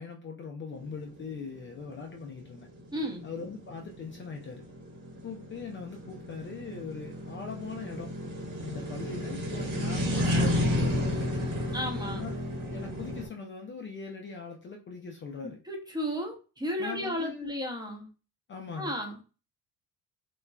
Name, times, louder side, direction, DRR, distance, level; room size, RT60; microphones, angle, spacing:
voice 1, 0.0-2.7 3.2-4.6 5.2-8.1 8.6-11.5 12.0-12.4 12.7-15.6 16.8-17.5 18.5-18.9, left 5 dB, 30° left, 2 dB, 0.5 m, -41 dB
sound 1, 0.8-13.3, equal, 55° right, 1.3 m, -32 dB
voice 2, 2.9-3.2 11.7-12.2 15.7-18.1 18.8-19.3, equal, 10° right, 1 dB, 0.9 m, -33 dB
3.0 x 2.3 x 2.2 m, 0.33 s
supercardioid pair, 75°, 38 cm